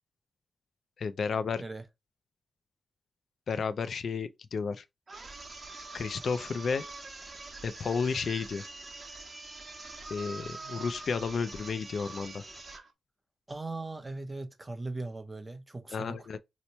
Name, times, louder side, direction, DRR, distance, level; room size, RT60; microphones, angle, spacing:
voice 1, 1.0-1.6 3.5-4.8 5.9-6.8 7.6-8.6 10.1-12.4 15.9-16.4, left 5 dB, 65° left, 0.3 m, -32 dB
sound 1, 5.1-12.9, right 3 dB, 40° right, 1.0 m, -44 dB
voice 2, 13.5-16.3, right 2 dB, 20° right, 0.7 m, -39 dB
2.9 x 2.1 x 4.0 m
cardioid pair, 90°, 0 cm